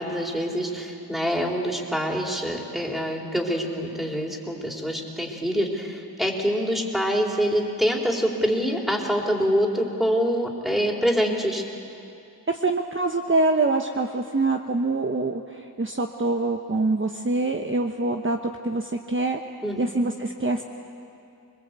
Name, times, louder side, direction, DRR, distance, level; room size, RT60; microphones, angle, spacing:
voice 1, 0.0-11.6 19.6-19.8, equal, ahead, -1 dB, 3.9 m, -25 dB
voice 2, 12.5-19.4 19.8-20.6, right 2 dB, 30° right, 3 dB, 1.1 m, -25 dB
26.0 x 21.0 x 8.3 m, 2.6 s
wide cardioid pair, 60°, 39 cm